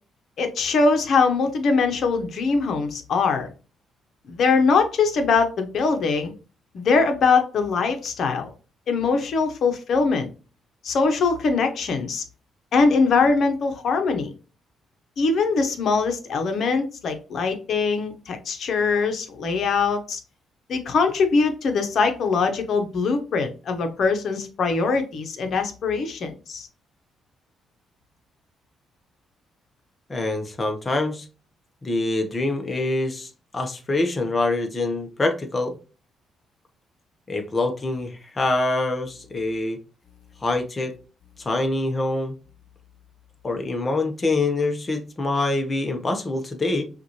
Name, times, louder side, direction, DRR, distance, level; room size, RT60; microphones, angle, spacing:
voice 1, 0.4-3.5 4.3-6.3 6.7-8.5 8.9-10.3 10.8-12.2 12.7-14.3 15.2-20.2 20.7-26.7, left 4 dB, 60° left, 1.0 m, -22 dB
voice 2, 30.1-31.3 31.8-35.8 37.3-39.8 40.4-40.9 41.4-42.3 43.4-46.8, left 2 dB, 30° left, 1.0 m, -25 dB
5.8 x 2.6 x 3.0 m
cardioid pair, 90°, 0 cm